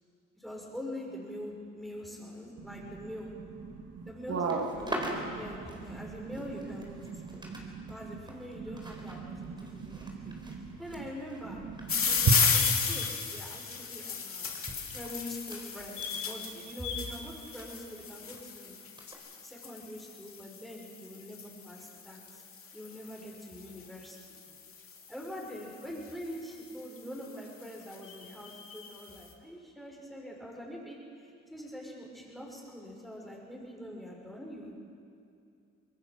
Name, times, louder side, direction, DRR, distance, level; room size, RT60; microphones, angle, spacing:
voice 1, 0.4-3.3 4.1-7.4 7.9-10.0 10.2-10.3 10.8-11.6 11.9-12.3 12.5-14.5 14.9-18.7 19.4-22.4 22.7-24.2 25.1-34.8, equal, ahead, -2 dB, 6.5 m, -44 dB
voice 2, 2.6-3.2 3.6-8.2 8.5-11.1 11.4-12.4, right 5 dB, 55° right, 2 dB, 2.0 m, -37 dB
sound 1, 4.3-7.6 7.9-12.9 13.1-13.4 14.2-18.4 19.0-19.1, right 1 dB, 15° right, 4.6 m, -44 dB
sound 2, 11.9-25.1 26.0-26.4 27.0-27.1 27.3-27.4 27.6-29.0, left 6 dB, 45° left, 2.5 m, -34 dB
25.5 x 21.0 x 6.3 m, 2.5 s
cardioid pair, 90°, 30 cm